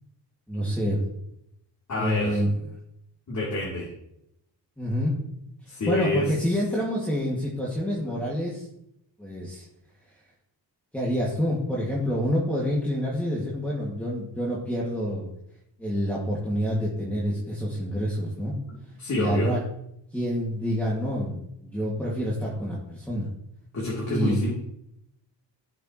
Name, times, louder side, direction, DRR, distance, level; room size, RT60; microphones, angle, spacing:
voice 1, 0.5-1.0 2.0-2.5 4.8-5.1 5.9-8.7 9.2-9.6 10.9-15.3 15.8-18.5 19.1-19.6 20.1-23.3 24.1-24.4, equal, 5° left, -6 dB, 2.2 m, -27 dB
voice 2, 1.9-2.4 3.3-3.9 5.7-6.3 19.0-19.5 23.7-24.5, left 1 dB, 40° left, -6 dB, 3.3 m, -27 dB
15.5 x 6.9 x 3.2 m, 0.78 s
cardioid pair, 120°, 43 cm